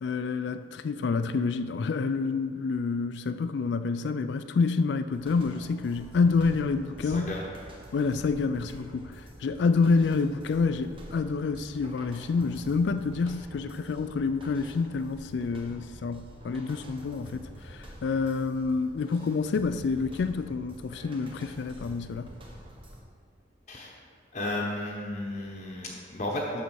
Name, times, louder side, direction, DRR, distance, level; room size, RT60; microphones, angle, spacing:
voice 1, 0.0-7.4 7.9-22.3, left 4 dB, 65° left, 10 dB, 0.3 m, -28 dB
sound 1, 5.1-23.0, right 1 dB, 30° right, 1.1 m, -47 dB
voice 2, 7.0-7.4 23.7-23.9 24.3-26.6, left 1 dB, 40° left, -2 dB, 0.9 m, -33 dB
11.5 x 4.1 x 6.2 m, 2.2 s
head